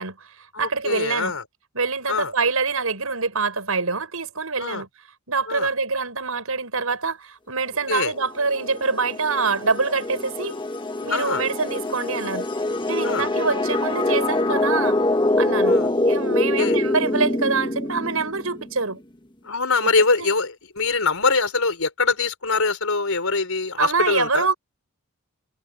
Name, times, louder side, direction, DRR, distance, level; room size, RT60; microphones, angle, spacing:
voice 1, 0.0-1.3 1.7-4.9 5.3-10.6 11.0-12.5 12.9-15.0 15.4-15.8 16.0-19.0 19.8-19.9 20.2-20.3 23.8-24.5, right 4 dB, 90° right, 6.2 m, -25 dB
voice 2, 0.5-1.4 2.1-2.3 4.6-4.8 5.5-5.7 7.9-8.1 11.1-11.4 13.0-13.3 15.6-15.9 16.6-16.8 19.4-24.5, left 4 dB, 80° left, 4.5 m, -23 dB
sound 1, 8.2-18.7, left 2 dB, 20° left, 1.4 m, -24 dB
head